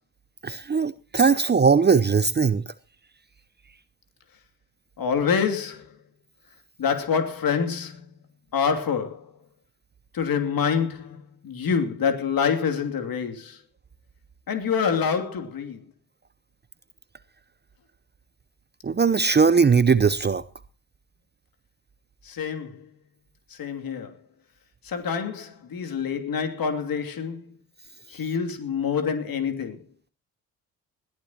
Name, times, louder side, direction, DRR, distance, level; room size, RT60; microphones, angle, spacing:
voice 1, 0.4-2.6 18.8-20.4, right 5 dB, 25° right, 0.8 m, -19 dB
voice 2, 5.0-5.9 6.8-8.0 8.5-9.3 10.1-13.6 14.5-15.8 22.2-22.9 23.6-24.1 24.8-27.6 28.1-29.8, left 6 dB, 55° left, 2.8 m, -26 dB
20.5 x 14.5 x 2.9 m
hypercardioid pair, 45°, 42 cm